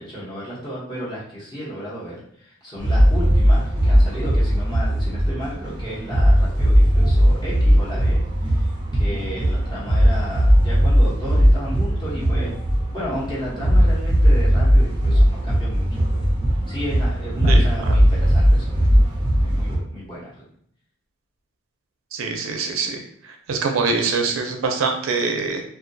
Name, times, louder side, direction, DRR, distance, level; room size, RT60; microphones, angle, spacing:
voice 1, 0.0-8.2 8.5-12.6 12.9-16.2 16.7-19.1 19.4-20.4, equal, 20° left, -7 dB, 0.8 m, -33 dB
sound 1, 2.8-19.8, equal, 25° right, 0.4 m, -18 dB
voice 2, 22.1-25.6, right 4 dB, 80° right, 3 dB, 0.4 m, -24 dB
2.2 x 2.2 x 2.6 m, 0.65 s
head